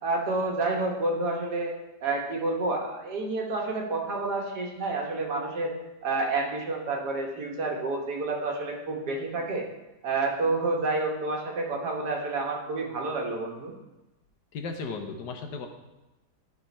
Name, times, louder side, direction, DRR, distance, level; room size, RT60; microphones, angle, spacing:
voice 1, 0.0-1.7 2.0-5.7 6.0-9.6 10.0-13.7, right 3 dB, 75° right, 1 dB, 1.8 m, -29 dB
voice 2, 14.5-15.7, left 4 dB, 85° left, 5 dB, 1.4 m, -35 dB
11.0 x 3.8 x 4.2 m, 1.0 s
omnidirectional pair, 1.8 m